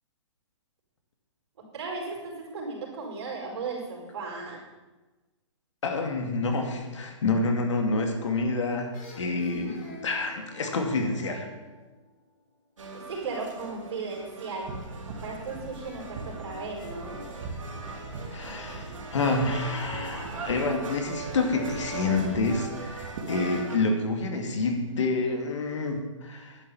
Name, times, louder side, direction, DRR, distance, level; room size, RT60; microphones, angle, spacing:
voice 1, 1.7-4.6 12.9-14.7 15.1-17.2, right 4 dB, 55° right, -1 dB, 4.8 m, -36 dB
voice 2, 5.8-11.5 18.3-26.6, left 3 dB, 70° left, 3 dB, 2.4 m, -28 dB
sound 1, 8.9-12.6 15.8-20.2, left 2 dB, 30° left, 3.2 m, -49 dB
sound 2, 12.8-23.8, right 3 dB, 85° right, 3.1 m, -40 dB
sound 3, 14.6-23.3, right 3 dB, 35° right, 2.2 m, -42 dB
10.5 x 7.6 x 7.0 m, 1.2 s
hypercardioid pair, 155°, 16 cm